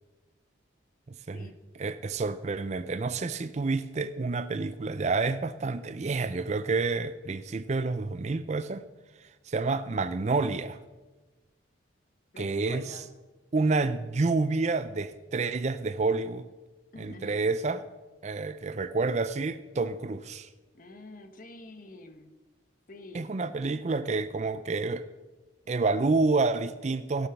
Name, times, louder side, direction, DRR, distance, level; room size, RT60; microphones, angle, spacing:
voice 1, 1.8-8.8 9.5-10.8 12.4-12.8 13.5-16.5 17.0-17.8 18.2-20.5 23.1-25.0 25.7-27.3, right 3 dB, 35° right, 13 dB, 0.4 m, -29 dB
voice 2, 12.3-13.1 16.9-17.5 20.7-22.3 22.9-23.3, left 2 dB, 45° left, 7 dB, 1.1 m, -46 dB
17.0 x 7.0 x 5.9 m, 1.2 s
head